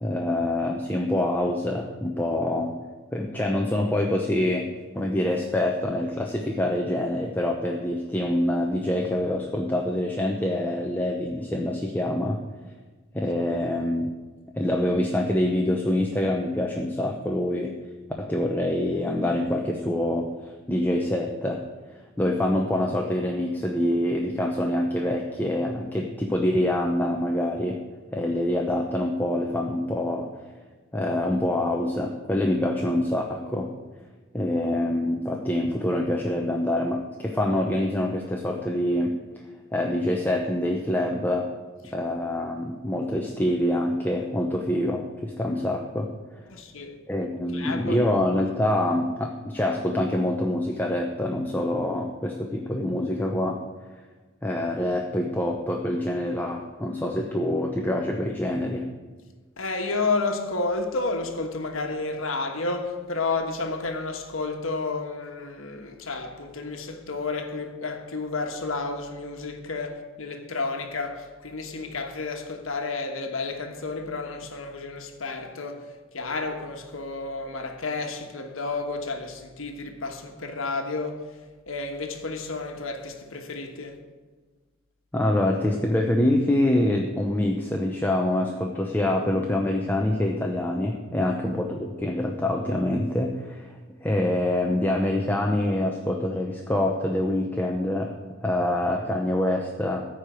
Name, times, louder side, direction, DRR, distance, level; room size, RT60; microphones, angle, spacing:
voice 1, 0.0-2.8 3.1-4.7 4.9-12.4 13.1-14.1 14.5-17.7 18.2-21.6 22.2-27.8 28.1-30.3 30.9-33.7 34.3-39.1 39.7-41.5 41.9-46.4 47.1-53.6 54.4-58.9 85.1-93.7 94.0-98.1 98.4-100.1, left 1 dB, 10° left, 0.7 m, -25 dB
voice 2, 46.5-47.0 47.5-48.1 59.6-81.4 81.7-84.0 91.2-91.3, left 3 dB, 70° left, 1.3 m, -31 dB
14.5 x 5.0 x 9.1 m
head